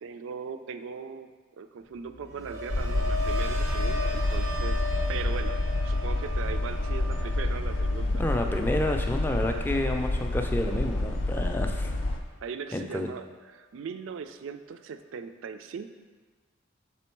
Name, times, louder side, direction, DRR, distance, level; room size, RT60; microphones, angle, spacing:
voice 1, 0.0-4.8 5.1-5.6 5.8-8.2 12.4-13.3 13.5-15.9, right 6 dB, 70° right, 10 dB, 0.3 m, -39 dB
sound 1, 2.0-12.0 12.4-12.8, left 1 dB, 90° right, 0.8 m, -39 dB
sound 2, 2.7-12.2, left 1 dB, 65° left, 0.5 m, -28 dB
voice 2, 8.2-11.9 12.7-13.1, left 1 dB, 10° left, 3 dB, 0.3 m, -29 dB
6.1 x 3.5 x 4.4 m, 1.4 s
head